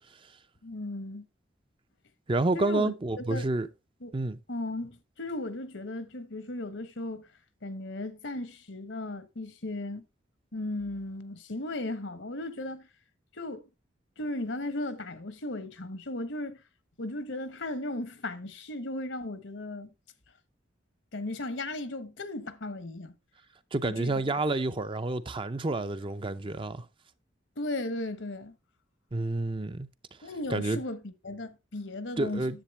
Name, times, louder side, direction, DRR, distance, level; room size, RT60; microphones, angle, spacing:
voice 1, 0.6-1.3 2.5-2.9 3.3-3.4 4.0-4.1 4.5-7.3 7.6-10.0 10.5-12.9 13.3-13.6 14.2-16.6 17.0-19.9 21.1-23.1 23.8-24.3 27.6-28.5 30.2-32.5, left 2 dB, 75° left, 1.2 m, -36 dB
voice 2, 2.3-3.7 4.1-4.4 23.7-26.9 29.1-29.9 30.2-30.8 32.2-32.6, right 2 dB, 25° right, 0.5 m, -29 dB
10.0 x 7.7 x 3.2 m
head